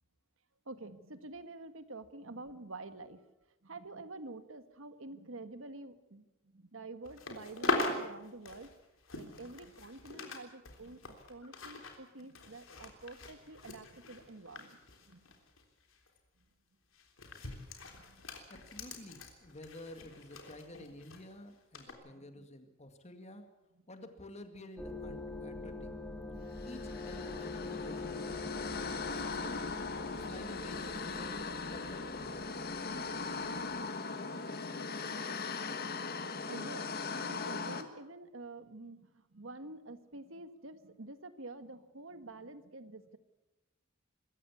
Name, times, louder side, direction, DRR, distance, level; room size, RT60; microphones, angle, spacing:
voice 1, 0.6-3.2 3.6-6.3 6.5-8.7 9.1-15.3 17.9-18.2 22.2-22.5 36.5-36.9 37.1-43.2, right 2 dB, 75° right, 11 dB, 1.6 m, -48 dB
sound 1, 7.0-10.4 10.6-15.6 15.9-16.2 16.9-21.2 21.7-21.9, left 2 dB, 75° left, 3.6 m, -41 dB
voice 2, 18.5-23.5 23.9-25.9 26.7-29.6 30.1-32.5, left 1 dB, 35° left, 7 dB, 2.1 m, -51 dB
sound 2, 24.8-33.9, left 3 dB, 5° left, 1.8 m, -44 dB
sound 3, 26.5-37.8, left 4 dB, 50° left, 1.7 m, -39 dB
25.5 x 14.5 x 8.4 m, 1.0 s
head